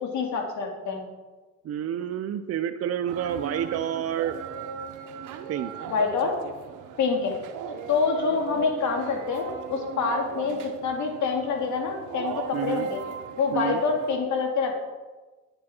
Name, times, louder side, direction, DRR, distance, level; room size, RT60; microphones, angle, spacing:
voice 1, 0.0-1.0 5.9-6.3 7.0-7.3 7.9-13.0 13.4-14.7, left 4 dB, 70° left, 2 dB, 2.3 m, -26 dB
voice 2, 1.6-4.4 5.5-5.7 12.5-12.9 13.5-13.8, right 9 dB, 55° right, 8 dB, 0.6 m, -29 dB
sound 1, 3.1-14.2, right 7 dB, 85° right, 0.8 m, -38 dB
9.6 x 9.0 x 4.3 m, 1.2 s
cardioid pair, 90°, 30 cm